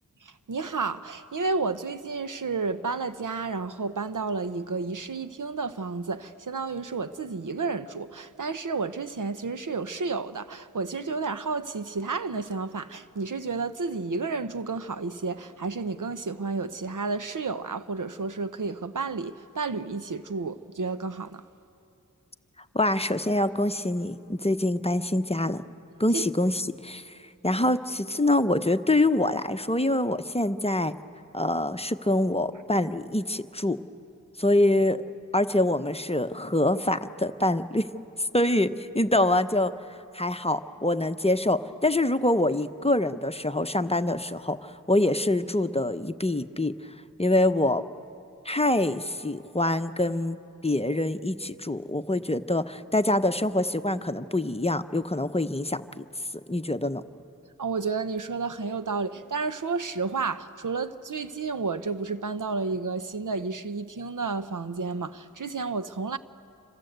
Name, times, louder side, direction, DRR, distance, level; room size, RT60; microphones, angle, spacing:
voice 1, 0.2-21.4 26.1-26.2 57.6-66.2, right 4 dB, 70° right, 0.9 m, -31 dB
voice 2, 22.7-25.6 26.0-27.2 27.4-30.9 31.3-33.8 34.4-35.0 35.3-37.9 38.2-39.7 40.1-46.7 47.2-47.8 48.4-50.4 50.6-56.0 56.5-57.0, left 1 dB, 20° left, 0.9 m, -25 dB
28.0 x 25.5 x 8.0 m
wide cardioid pair, 45°, 33 cm